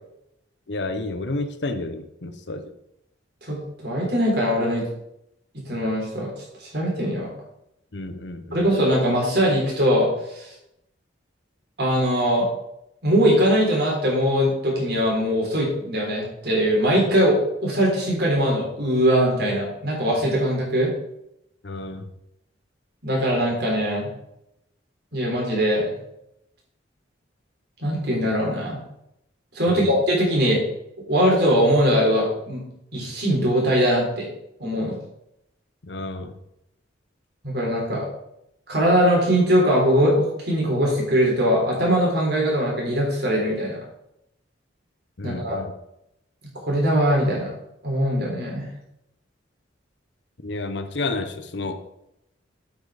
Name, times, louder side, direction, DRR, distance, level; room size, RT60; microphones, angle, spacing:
voice 1, 0.7-2.6 7.9-8.7 21.6-22.1 29.7-29.9 35.8-36.3 45.2-45.7 50.4-51.8, left 2 dB, 65° left, 9 dB, 0.9 m, -30 dB
voice 2, 3.8-4.8 5.7-6.3 6.6-7.3 8.5-10.5 11.8-12.5 13.0-20.9 23.0-24.1 25.1-25.9 27.8-28.8 29.5-30.6 31.1-32.6 32.9-34.3 34.6-35.0 37.4-38.1 38.7-43.8 45.2-45.6 46.5-47.5 47.8-48.7, equal, 60° right, -2 dB, 3.8 m, -21 dB
8.3 x 6.3 x 5.0 m, 0.81 s
head